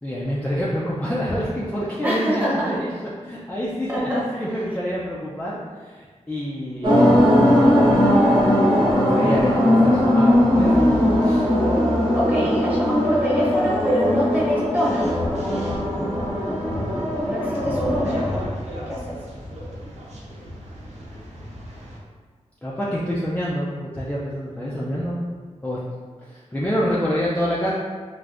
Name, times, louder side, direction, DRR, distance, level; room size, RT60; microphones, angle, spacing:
voice 1, 0.0-2.9 3.2-8.1 8.8-11.0 11.2-11.5 16.7-17.1 18.8-18.9 22.6-25.2 25.6-25.8 26.2-27.7, equal, 10° left, -7 dB, 0.4 m, -27 dB
voice 2, 2.0-2.8 3.9-4.5 12.1-15.1 17.3-18.3 18.9-19.1, equal, 15° right, -8 dB, 1.0 m, -24 dB
sound 1, 6.8-18.5, left 1 dB, 40° right, 1.0 m, -19 dB
sound 2, 10.5-22.0, left 1 dB, 70° right, 0.6 m, -35 dB
3.2 x 2.6 x 2.5 m, 1.5 s
wide cardioid pair, 110°, 12 cm